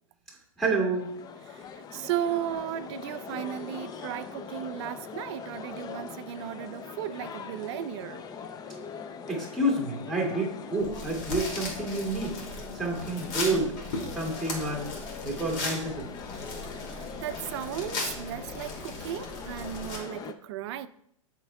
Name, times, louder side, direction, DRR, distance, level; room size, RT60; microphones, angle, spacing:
voice 1, 0.6-1.1 9.3-12.4 12.7-13.7 14.1-14.9 15.2-16.1, right 2 dB, 5° left, 2.3 m, -29 dB
sound 1, 0.9-20.3, left 6 dB, 20° left, 0.5 m, -41 dB
voice 2, 1.5-8.2 16.9-20.9, right 11 dB, 50° right, 0.5 m, -35 dB
sound 2, 10.8-20.0, left 2 dB, 50° left, 2.5 m, -38 dB
13.0 x 4.5 x 2.3 m
hypercardioid pair, 110°, 18 cm